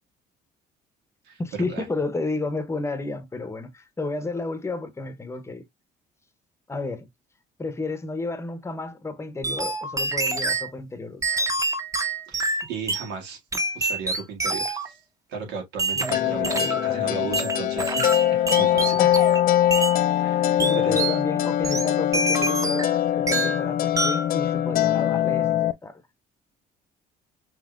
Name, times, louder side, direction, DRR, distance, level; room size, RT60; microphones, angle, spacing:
voice 1, 1.4-5.6 6.7-7.1 7.6-11.5 15.9-17.3 19.0-19.1 20.2-26.0, left 3 dB, 15° left, 0.8 m, -32 dB
sound 1, 9.4-10.7 11.2-13.1 13.5-14.9 15.8-16.9 17.3-19.4 19.7-20.0 20.6-21.2 21.6-23.0 23.3-23.6 24.0-24.3, right 2 dB, 20° right, 0.9 m, -26 dB
voice 2, 12.3-13.4 13.7-15.0 15.3-19.0 19.9-20.6 20.8-21.0, right 5 dB, 85° right, 1.7 m, -36 dB
sound 2, 16.1-25.7, left 12 dB, 60° left, 0.5 m, -22 dB
5.4 x 2.9 x 2.3 m
cardioid pair, 110°, 17 cm